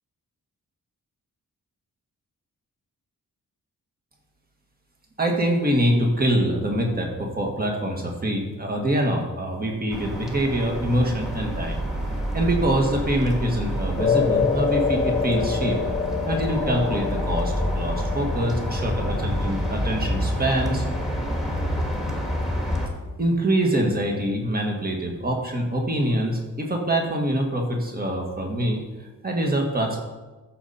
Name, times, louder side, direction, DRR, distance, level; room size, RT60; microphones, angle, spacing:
voice 1, 5.2-11.8 12.3-15.8 16.2-20.9 23.2-30.0, right 1 dB, 25° right, 1 dB, 1.8 m, -24 dB
sound 1, 9.9-22.9, equal, ahead, 1.7 m, -28 dB
sound 2, 14.0-22.5, left 6 dB, 25° left, 0.5 m, -28 dB
15.0 x 6.7 x 4.3 m, 1.2 s
wide cardioid pair, 160°, 34 cm